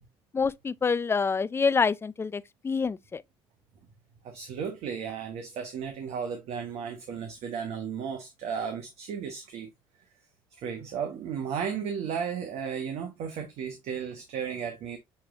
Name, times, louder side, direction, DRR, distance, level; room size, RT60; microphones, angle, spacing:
voice 1, 0.3-3.2, left 5 dB, 20° left, 0.4 m, -27 dB
voice 2, 4.2-9.7 10.6-15.0, right 7 dB, 65° right, 1.0 m, -34 dB
6.8 x 3.1 x 2.4 m
supercardioid pair, 75°, 11 cm